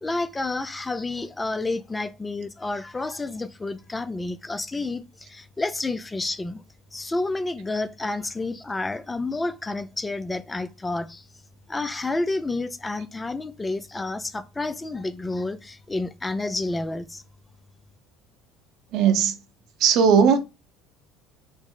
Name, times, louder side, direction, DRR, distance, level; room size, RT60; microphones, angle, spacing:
voice 1, 0.0-6.6 6.9-11.2 11.7-17.2, left 2 dB, 15° left, 0.4 m, -30 dB
voice 2, 18.9-19.3 19.8-20.4, right 7 dB, 65° right, 0.9 m, -17 dB
6.2 x 2.1 x 3.8 m
supercardioid pair, 85°, 0 cm